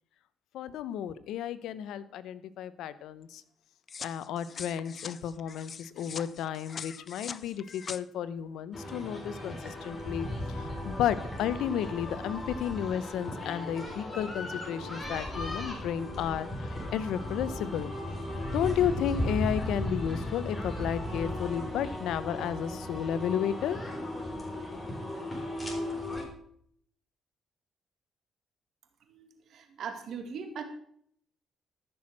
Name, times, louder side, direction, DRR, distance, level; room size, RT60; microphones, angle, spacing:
voice 1, 0.5-3.4 4.0-17.9 18.5-23.8 24.5-24.8, left 9 dB, 85° left, 15 dB, 0.8 m, -33 dB
sound 1, 3.9-8.0, left 6 dB, 45° left, 0.5 m, -43 dB
sound 2, 8.7-26.2, left 1 dB, 20° left, 3.7 m, -36 dB
voice 2, 29.1-30.6, right 6 dB, 65° right, 6 dB, 2.1 m, -40 dB
14.0 x 6.3 x 6.2 m, 0.64 s
cardioid pair, 90°, 0 cm